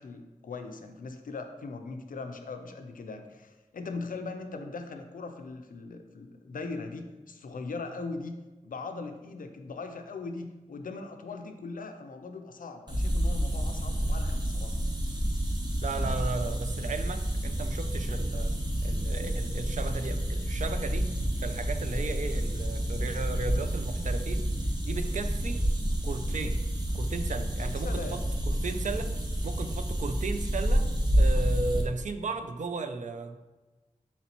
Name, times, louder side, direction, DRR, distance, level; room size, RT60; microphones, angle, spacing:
voice 1, 0.0-8.4 8.6-14.8 27.6-28.2, left 3 dB, 85° left, 6 dB, 0.4 m, -40 dB
sound 1, 12.9-31.8, equal, 30° right, 0.9 m, -29 dB
voice 2, 15.8-18.6 18.8-21.1 21.4-24.5 24.8-25.6 26.0-26.6 26.9-28.2 28.5-29.1 29.4-30.9 31.1-33.4, right 3 dB, 65° right, 9 dB, 0.4 m, -35 dB
4.3 x 4.0 x 2.9 m, 1.1 s
wide cardioid pair, 45°, 14 cm